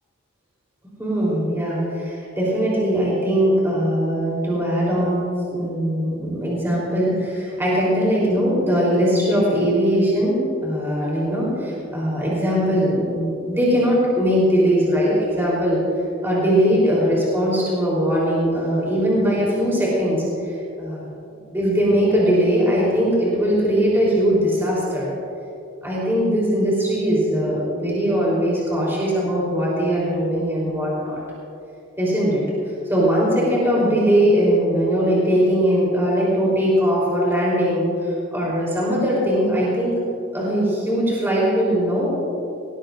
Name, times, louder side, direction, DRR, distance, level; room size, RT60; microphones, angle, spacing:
voice 1, 1.0-15.8 16.2-20.5 20.8-21.0 21.5-25.1 25.8-31.2 32.0-32.4 32.9-39.9 40.3-42.1, equal, 10° right, -6 dB, 3.6 m, -20 dB
20.0 x 19.0 x 2.6 m, 2.6 s
head